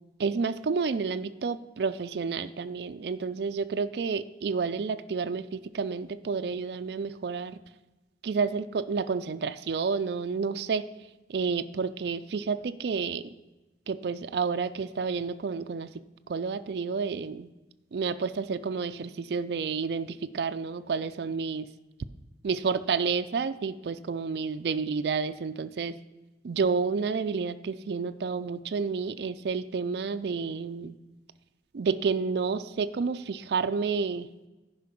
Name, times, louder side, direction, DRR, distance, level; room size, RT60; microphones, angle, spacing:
voice 1, 0.2-7.6 8.2-10.8 11.3-13.3 13.9-15.9 16.3-17.5 17.9-21.7 22.4-26.0 26.4-30.9 31.7-34.3, right 5 dB, 65° right, 10 dB, 0.4 m, -30 dB
11.0 x 5.0 x 6.0 m, 1.1 s
head